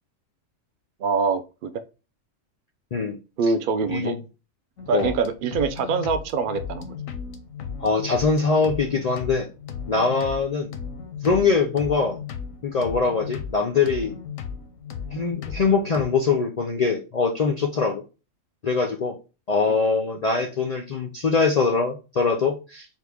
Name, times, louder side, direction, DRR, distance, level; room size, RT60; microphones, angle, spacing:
voice 1, 1.0-1.7 3.4-4.2 4.9-7.0 20.3-20.5, right 4 dB, 70° right, 10 dB, 0.5 m, -24 dB
sound 1, 4.8-16.0, left 6 dB, 90° left, 1.1 m, -36 dB
voice 2, 7.8-9.5 9.9-10.7 11.2-12.2 12.6-14.1 15.1-18.0 18.6-19.2 19.5-22.9, left 4 dB, 70° left, 2 dB, 0.3 m, -23 dB
4.5 x 2.4 x 3.4 m, 0.31 s
omnidirectional pair, 1.4 m